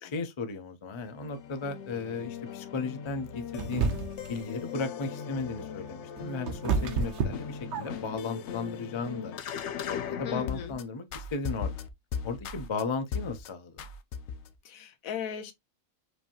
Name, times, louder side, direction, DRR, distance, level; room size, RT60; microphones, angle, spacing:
voice 1, 0.0-3.9 4.3-9.3 9.9-11.8 12.2-13.9, left 4 dB, 50° left, 0.3 m, -35 dB
sound 1, 1.1-10.8 11.1-12.8 13.1-13.5 13.8-14.5, left 7 dB, 65° left, 0.8 m, -38 dB
sound 2, 3.6-4.3 5.9-8.2, right 5 dB, 60° right, 0.9 m, -30 dB
voice 2, 10.2-10.7 14.6-15.5, left 8 dB, 80° left, 1.2 m, -37 dB
4.9 x 2.6 x 2.8 m
omnidirectional pair, 1.5 m